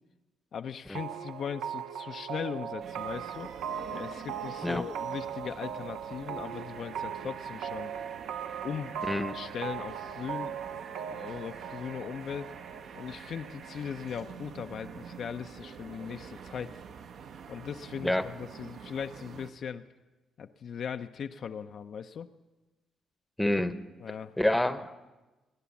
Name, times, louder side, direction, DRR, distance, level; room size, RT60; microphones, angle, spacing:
voice 1, 0.5-3.5 3.9-7.9 8.6-9.0 9.3-10.8 11.1-12.5 12.9-16.7 17.5-19.8 20.4-22.3 24.0-24.3, left 7 dB, 60° left, 8 dB, 0.5 m, -39 dB
sound 1, 0.9-14.5, right 8 dB, 90° right, 0.6 m, -39 dB
sound 2, 2.8-19.5, right 6 dB, 65° right, 0.9 m, -47 dB
voice 2, 23.4-23.8 24.4-25.0, left 1 dB, 5° left, 12 dB, 0.8 m, -27 dB
21.0 x 9.3 x 7.1 m, 1.1 s
cardioid pair, 90°, 0 cm